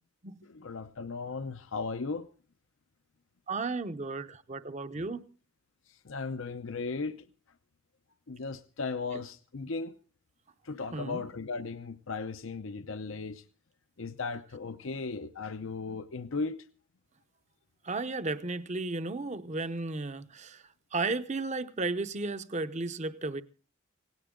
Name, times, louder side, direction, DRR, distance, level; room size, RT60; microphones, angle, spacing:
voice 1, 0.4-2.3 5.9-7.3 8.3-9.9 10.6-13.4 14.0-16.7, left 4 dB, 65° left, 0.7 m, -36 dB
voice 2, 3.5-5.2 10.9-11.2 17.8-20.6 20.9-23.4, right 3 dB, 35° right, 0.8 m, -34 dB
18.0 x 17.0 x 3.7 m
head